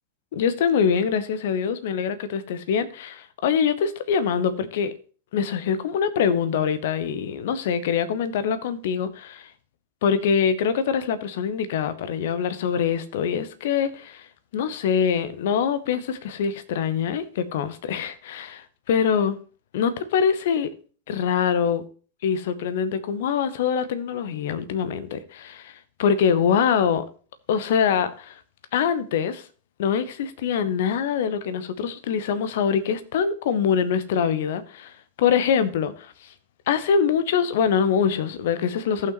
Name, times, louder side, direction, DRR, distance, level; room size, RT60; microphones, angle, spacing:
voice 1, 0.3-4.9 5.3-9.5 10.0-14.3 14.5-19.3 19.7-20.7 21.1-21.8 22.2-27.1 27.5-28.4 28.7-29.5 29.8-36.3 36.7-39.1, left 7 dB, 55° left, 0.8 m, -24 dB
15.0 x 5.9 x 3.0 m
figure-of-eight pair, 90°, 0 cm